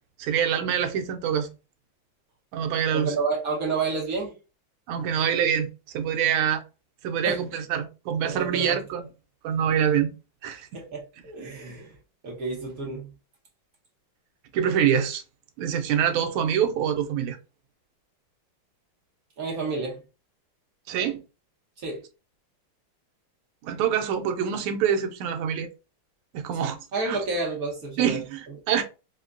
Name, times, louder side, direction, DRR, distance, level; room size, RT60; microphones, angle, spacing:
voice 1, 0.2-1.5 2.5-3.1 4.9-6.6 7.0-9.0 9.4-10.1 10.4-10.7 14.5-15.2 15.6-17.4 20.9-21.2 23.6-25.7 26.3-26.8 27.0-27.2 28.0-28.8, right 8 dB, 85° right, 1.5 m, -25 dB
voice 2, 2.9-4.3 7.2-7.4 8.2-8.8 10.7-11.9 12.2-13.1 19.4-20.0 21.8-22.0 26.6-28.2, right 3 dB, 55° right, 1.1 m, -30 dB
4.4 x 2.1 x 2.4 m
omnidirectional pair, 2.3 m